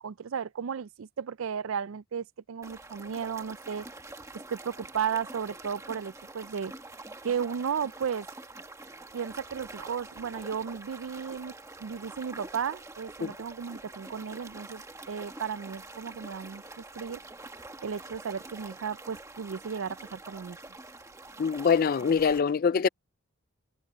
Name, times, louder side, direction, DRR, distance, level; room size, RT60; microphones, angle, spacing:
voice 1, 0.0-3.9 4.5-6.7 7.2-8.3 9.1-11.5 11.8-17.2 17.8-20.6, right 7 dB, 65° right, 0.4 m, -34 dB
sound 1, 2.6-22.4, right 2 dB, 15° right, 1.3 m, -46 dB
voice 2, 21.4-22.9, left 6 dB, 40° left, 0.3 m, -24 dB
head